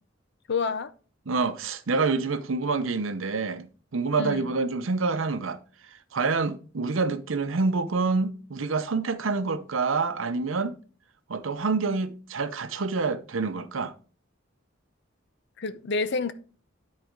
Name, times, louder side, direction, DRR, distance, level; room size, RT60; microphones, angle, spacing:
voice 1, 0.5-0.9 4.2-4.5 15.6-16.3, left 4 dB, 60° left, 0.6 m, -28 dB
voice 2, 1.3-5.6 6.1-10.8 11.3-13.9, right 4 dB, 80° right, 0.7 m, -27 dB
10.0 x 4.1 x 4.6 m
head